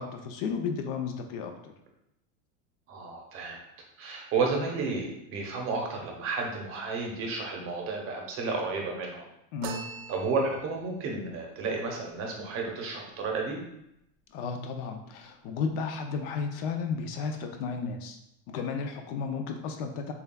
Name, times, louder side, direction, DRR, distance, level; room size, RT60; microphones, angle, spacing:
voice 1, 0.0-1.7 9.5-9.9 14.3-18.2 18.5-20.1, left 5 dB, 50° left, 5 dB, 0.5 m, -33 dB
voice 2, 2.9-3.6 4.0-9.2 10.1-13.6, right 4 dB, 35° right, 1 dB, 0.8 m, -32 dB
sound 1, 9.6-10.9, right 5 dB, 75° right, 0.6 m, -41 dB
6.8 x 2.3 x 2.2 m, 0.80 s
supercardioid pair, 150°, 38 cm